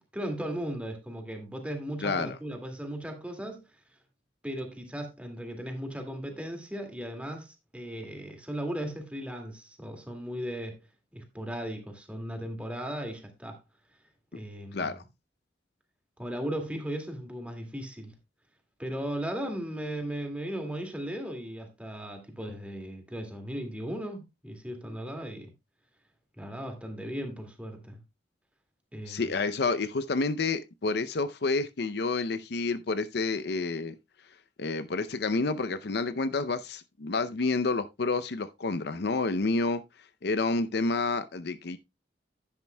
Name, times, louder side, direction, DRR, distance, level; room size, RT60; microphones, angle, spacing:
voice 1, 0.1-3.6 4.4-10.8 11.1-13.6 14.3-15.0 16.2-18.1 18.8-25.5 26.4-28.0 28.9-29.2, equal, 5° right, 2.0 m, -37 dB
voice 2, 2.0-2.4 14.7-15.0 29.1-34.0 34.6-39.8 40.2-41.8, left 3 dB, 65° left, 0.6 m, -29 dB
10.5 x 10.5 x 2.2 m
head